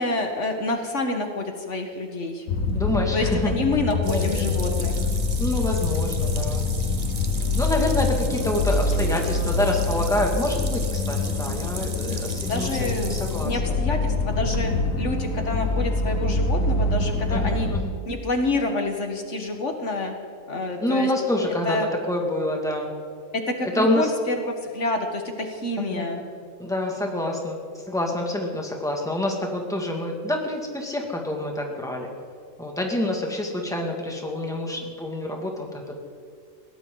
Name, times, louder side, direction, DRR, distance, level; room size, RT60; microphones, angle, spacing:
voice 1, 0.0-2.5 3.1-4.9 12.5-13.1 13.4-14.7 15.0-17.7 18.1-20.1 20.5-21.1 21.6-21.9 23.3-26.2, left 2 dB, 65° left, 4 dB, 1.8 m, -27 dB
sound 1, 2.5-17.8, left 3 dB, 85° left, 1.6 m, -25 dB
voice 2, 2.7-3.5 4.0-4.6 5.4-6.7 7.6-13.8 17.3-17.9 20.8-22.9 23.6-24.1 25.9-26.2 26.6-32.1 32.6-35.9, left 1 dB, ahead, 0 dB, 2.1 m, -27 dB
sound 2, 4.0-13.6, right 4 dB, 35° right, 1.0 m, -38 dB
21.5 x 17.0 x 3.9 m, 2.3 s
omnidirectional pair, 1.3 m